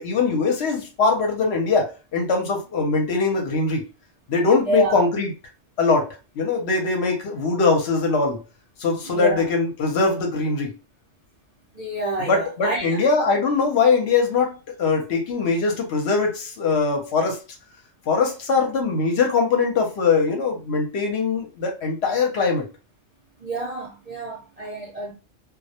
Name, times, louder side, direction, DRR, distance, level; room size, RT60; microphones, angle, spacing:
voice 1, 0.0-3.8 4.3-5.3 5.8-8.4 8.8-10.7 12.3-17.4 18.1-22.7, left 4 dB, 65° left, 0.8 m, -22 dB
voice 2, 4.7-5.0 9.1-9.5 11.7-13.1 23.4-25.1, right 1 dB, 50° right, 0.4 m, -28 dB
2.2 x 2.0 x 2.7 m
omnidirectional pair, 1.3 m